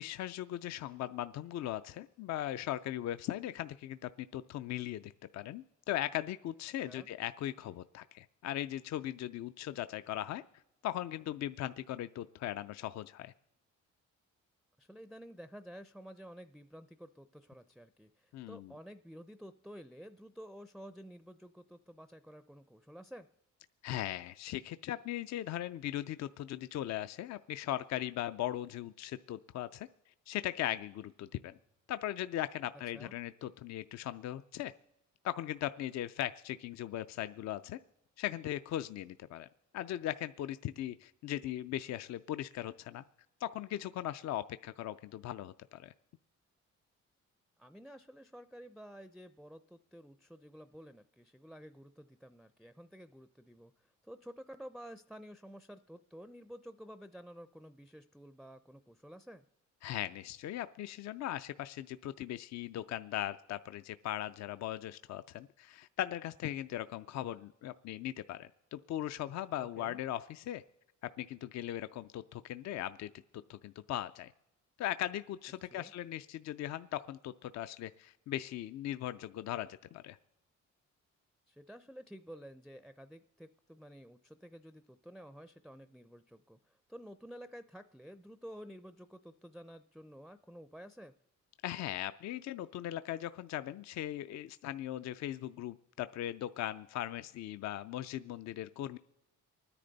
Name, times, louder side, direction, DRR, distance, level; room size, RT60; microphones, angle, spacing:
voice 1, 0.0-10.4 10.8-13.3 18.3-18.7 23.8-29.9 30.3-31.6 31.9-34.7 35.2-37.8 38.2-39.5 39.7-43.0 43.4-45.9 59.8-70.6 71.0-73.1 73.5-74.3 74.8-80.2 91.6-99.0, left 12 dB, 65° left, 12 dB, 0.5 m, -39 dB
voice 2, 14.8-23.3 32.9-33.1 47.6-59.4 69.6-70.0 75.6-75.9 81.5-91.1, equal, ahead, 10 dB, 0.4 m, -51 dB
25.5 x 10.0 x 4.0 m, 0.87 s
cardioid pair, 90°, 30 cm